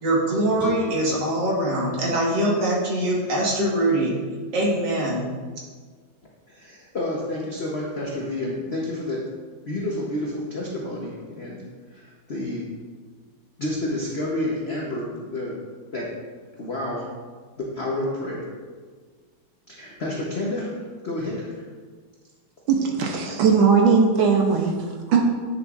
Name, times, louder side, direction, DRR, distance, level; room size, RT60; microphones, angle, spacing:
voice 1, 0.0-4.1 4.5-5.3, right 1 dB, 55° right, -4 dB, 2.0 m, -23 dB
sound 1, 0.6-3.8, right 2 dB, 20° right, 0.4 m, -42 dB
voice 2, 6.5-9.2 9.7-11.6 11.9-12.6 13.6-15.6 15.9-16.1 16.6-17.1 17.7-18.4 19.7-21.6, left 1 dB, 65° left, -4 dB, 0.6 m, -29 dB
voice 3, 22.7-25.2, right 5 dB, 75° right, 2 dB, 1.4 m, -19 dB
9.0 x 6.7 x 2.4 m, 1.5 s
omnidirectional pair, 2.4 m